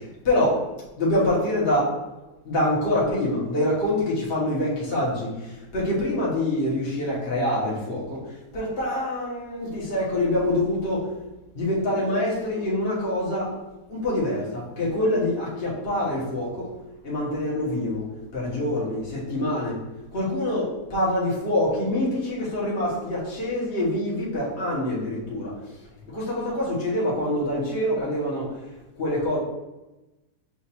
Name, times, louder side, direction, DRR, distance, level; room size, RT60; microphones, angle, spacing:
voice 1, 0.2-0.6 1.0-1.9 2.5-5.3 5.7-8.2 8.5-11.0 11.5-13.5 13.9-16.5 17.0-18.0 18.3-19.0 19.3-19.7 20.1-25.5 26.1-28.5 29.0-29.4, left 1 dB, 40° left, -6 dB, 1.1 m, -25 dB
5.9 x 2.5 x 2.8 m, 1.0 s
omnidirectional pair, 1.7 m